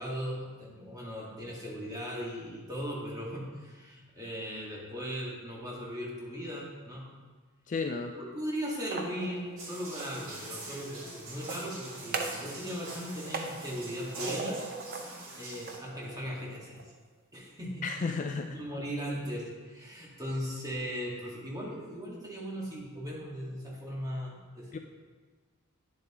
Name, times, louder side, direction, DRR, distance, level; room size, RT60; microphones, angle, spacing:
voice 1, 0.0-7.1 8.2-14.6 15.4-16.8 17.3-17.9 18.5-24.8, equal, 15° right, -4 dB, 1.7 m, -38 dB
voice 2, 7.7-8.1 17.8-18.6 24.7-24.8, left 4 dB, 35° left, 5 dB, 0.4 m, -32 dB
sound 1, 8.7-10.2 11.3-12.5 12.8-15.1 15.5-16.9, right 3 dB, 45° right, 0.7 m, -40 dB
sound 2, 9.6-15.8, right 2 dB, 65° right, 2.1 m, -44 dB
9.6 x 7.4 x 3.0 m, 1.4 s
head